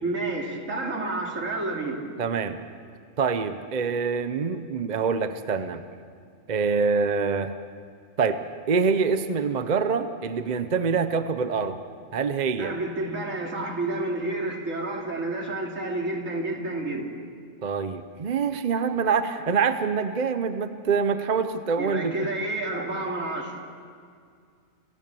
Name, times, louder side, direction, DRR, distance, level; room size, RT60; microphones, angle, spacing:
voice 1, 0.0-2.1 12.5-17.1 21.8-23.5, right 2 dB, 75° right, 0 dB, 3.0 m, -30 dB
voice 2, 2.2-2.6 3.2-5.8 6.5-7.5 8.2-8.4 8.7-11.8 12.1-12.7 17.6-22.3, right 5 dB, 40° right, 10 dB, 0.8 m, -25 dB
28.5 x 15.0 x 6.9 m, 2.2 s
omnidirectional pair, 1.4 m